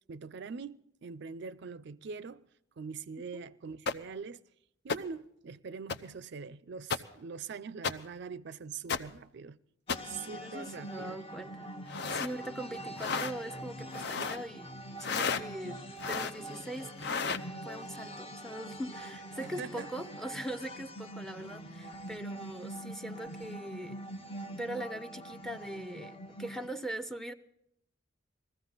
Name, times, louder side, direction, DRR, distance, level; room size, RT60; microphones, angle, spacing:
voice 1, 0.1-2.5 2.8-4.4 4.8-9.6 10.0-11.2 19.4-19.9 24.5-24.6, right 5 dB, 60° right, 0.4 m, -43 dB
sound 1, 3.9-4.0 4.9-5.0 5.9-6.0 6.9-7.0 7.8-7.9 8.9-9.0 9.9-10.0 11.8-12.3 13.0-13.3 13.9-14.4 15.0-15.4 16.0-16.4 17.0-17.4, left 5 dB, 60° left, 0.7 m, -32 dB
sound 2, 9.9-26.7, right 1 dB, 30° left, 0.9 m, -44 dB
voice 2, 10.3-11.7 12.1-14.7 15.0-16.9 17.6-24.0 24.5-27.3, right 1 dB, ahead, 0.6 m, -41 dB
20.0 x 14.5 x 4.0 m
head